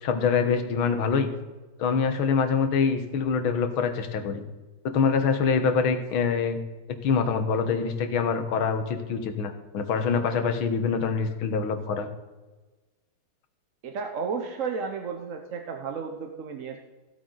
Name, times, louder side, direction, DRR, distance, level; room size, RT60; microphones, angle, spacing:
voice 1, 0.0-1.3 1.8-4.4 4.9-6.6 7.0-12.1, left 5 dB, 85° left, 8 dB, 1.9 m, -25 dB
voice 2, 13.8-16.8, right 5 dB, 55° right, 4 dB, 1.0 m, -33 dB
15.5 x 8.6 x 3.9 m, 1.2 s
omnidirectional pair, 2.2 m